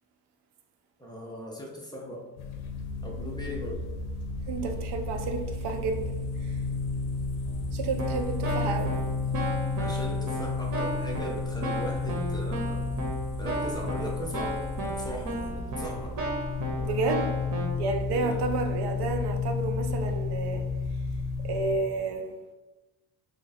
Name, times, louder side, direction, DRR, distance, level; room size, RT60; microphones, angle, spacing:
voice 1, 1.0-2.3 3.0-3.8 9.8-12.9 13.4-14.6 14.9-16.1 18.1-18.4, equal, 10° left, -2 dB, 0.4 m, -38 dB
sound 1, 2.4-21.8, left 4 dB, 80° left, 0.6 m, -32 dB
voice 2, 4.5-6.6 7.7-9.0 16.8-17.4 17.8-20.7 21.4-22.3, right 4 dB, 90° right, 4 dB, 0.6 m, -31 dB
Keyboard (musical), 7.5-7.6 8.0-17.7, right 1 dB, 55° right, 0.8 m, -34 dB
3.1 x 2.3 x 3.9 m, 1.1 s
cardioid pair, 170°, 38 cm